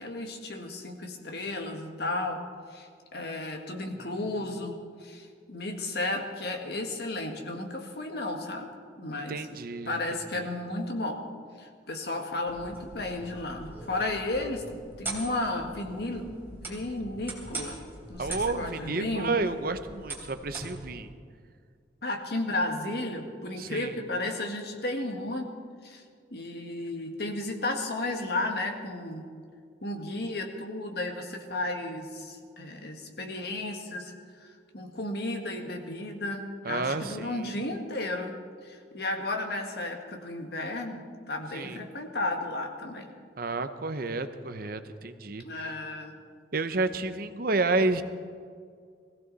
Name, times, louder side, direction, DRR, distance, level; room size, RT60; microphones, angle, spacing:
voice 1, 0.0-2.4 2.7-2.9 3.1-8.7 9.0-9.4 9.9-11.2 11.6-16.3 16.6-17.8 18.1-19.4 22.0-25.5 25.8-26.0 26.3-29.3 29.8-34.1 34.4-34.5 34.7-38.4 38.6-43.1 45.4-46.2, left 2 dB, 65° left, 3 dB, 1.8 m, -33 dB
voice 2, 9.1-10.5 18.2-21.1 23.6-24.0 36.6-37.6 41.5-41.8 43.4-45.8 46.5-48.0, right 3 dB, 55° right, 10 dB, 0.8 m, -31 dB
sound 1, 12.5-21.0, right 2 dB, 10° right, 3.0 m, -42 dB
21.0 x 16.0 x 4.1 m, 2.1 s
head